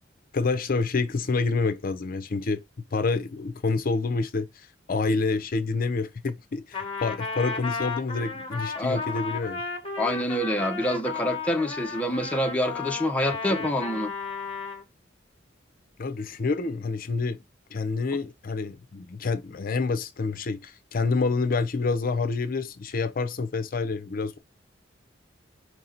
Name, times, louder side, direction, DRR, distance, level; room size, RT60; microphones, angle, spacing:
voice 1, 0.3-9.6 13.5-13.7 16.0-17.4 17.7-24.4, left 4 dB, 50° left, 0.5 m, -28 dB
Trumpet, 6.7-14.8, left 4 dB, 30° left, 1.1 m, -34 dB
voice 2, 10.0-14.1, left 1 dB, 5° left, 0.6 m, -26 dB
4.8 x 2.7 x 3.8 m
head